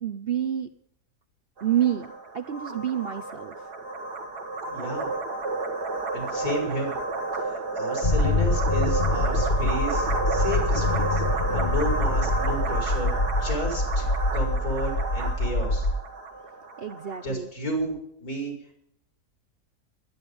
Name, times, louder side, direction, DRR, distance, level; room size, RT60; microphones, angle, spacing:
voice 1, 0.0-0.7 1.6-2.1 2.3-3.5 16.8-17.5, right 10 dB, 50° right, 8 dB, 0.8 m, -28 dB
sound 1, 1.6-17.3, right 3 dB, 75° right, 2.2 m, -31 dB
voice 2, 4.7-5.1 6.1-7.0 7.4-13.1 13.4-14.1 14.3-15.9 17.2-18.5, equal, 60° left, 0 dB, 5.8 m, -32 dB
sound 2, 8.0-15.9, left 2 dB, 40° left, 1.4 m, -25 dB
21.5 x 9.8 x 5.3 m, 0.73 s
omnidirectional pair, 1.7 m